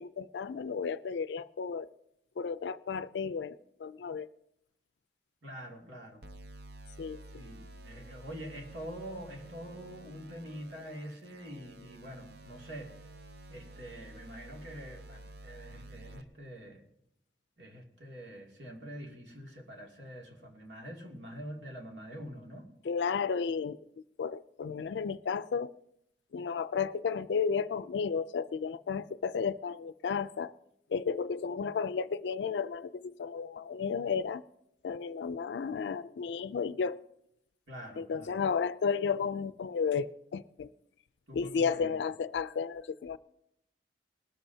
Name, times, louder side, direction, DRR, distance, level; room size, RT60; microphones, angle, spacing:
voice 1, 0.0-1.9 2.4-4.3 7.0-7.4 22.8-23.8 24.2-25.7 26.3-30.5 30.9-34.4 34.8-37.0 38.0-40.1 40.3-40.7 41.3-43.2, left 6 dB, 70° left, 14 dB, 0.4 m, -33 dB
voice 2, 5.4-6.2 7.4-13.0 13.5-16.8 17.6-22.7 37.7-38.4 41.3-41.9, equal, 85° right, 0 dB, 2.5 m, -45 dB
sound 1, 6.2-16.2, right 2 dB, 60° right, 0.9 m, -51 dB
19.5 x 13.5 x 2.7 m, 0.78 s
head